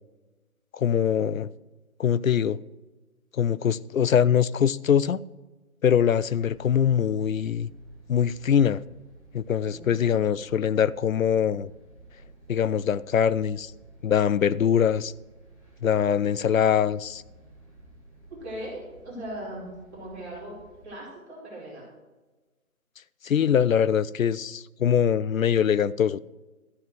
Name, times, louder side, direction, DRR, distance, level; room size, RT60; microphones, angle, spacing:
voice 1, 0.7-1.5 2.0-2.6 3.3-5.2 5.8-7.7 8.1-8.8 9.3-11.7 12.5-13.7 14.0-15.1 15.8-17.2 23.2-26.2, left 8 dB, 65° left, 0.5 m, -23 dB
sound 1, 6.3-20.9, right 2 dB, 25° left, 2.3 m, -52 dB
voice 2, 9.6-10.2 18.3-20.6 20.8-21.8, right 1 dB, 5° right, 1.9 m, -39 dB
13.0 x 7.2 x 4.6 m
hypercardioid pair, 175°, 44 cm